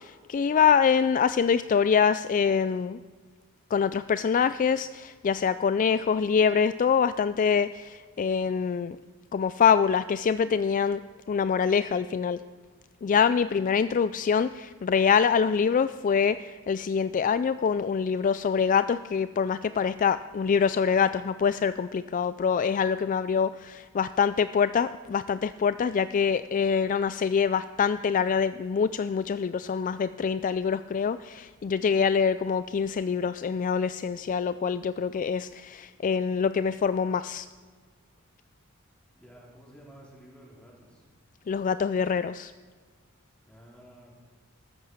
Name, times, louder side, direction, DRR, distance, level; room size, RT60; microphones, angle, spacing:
voice 1, 0.0-3.0 3.7-9.0 9.3-11.0 11.3-12.4 13.0-37.5 41.5-42.5, left 6 dB, 40° left, 14 dB, 0.3 m, -25 dB
voice 2, 39.1-41.0 43.5-44.2, equal, 5° left, -4 dB, 4.5 m, -52 dB
14.0 x 13.5 x 6.7 m, 1.5 s
head